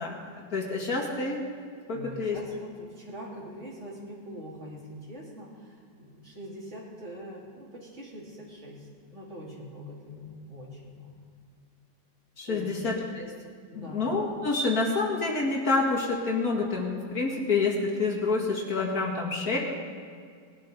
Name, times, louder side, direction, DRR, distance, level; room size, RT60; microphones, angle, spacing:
voice 1, 0.0-1.4 1.9-2.4 12.4-13.3 13.8-19.6, left 3 dB, 55° left, -2 dB, 2.3 m, -28 dB
voice 2, 1.9-11.1 12.4-12.7 13.7-14.1, equal, 40° right, -5 dB, 3.3 m, -43 dB
20.0 x 12.0 x 3.8 m, 2.2 s
omnidirectional pair, 1.9 m